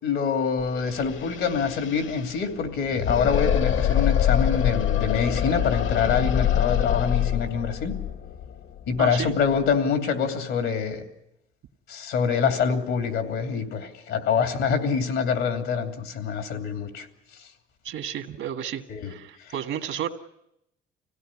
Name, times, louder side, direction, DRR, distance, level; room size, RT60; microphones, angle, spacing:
voice 1, 0.0-8.0 8.9-11.0 11.9-17.1 18.9-19.1 19.5-19.6, left 6 dB, 90° left, 2.9 m, -25 dB
sound 1, 0.6-0.7 0.9-9.7, left 10 dB, 70° left, 1.2 m, -25 dB
voice 2, 9.0-9.3 17.8-20.1, right 9 dB, 85° right, 1.8 m, -32 dB
25.5 x 17.0 x 9.9 m
cardioid pair, 90°, 20 cm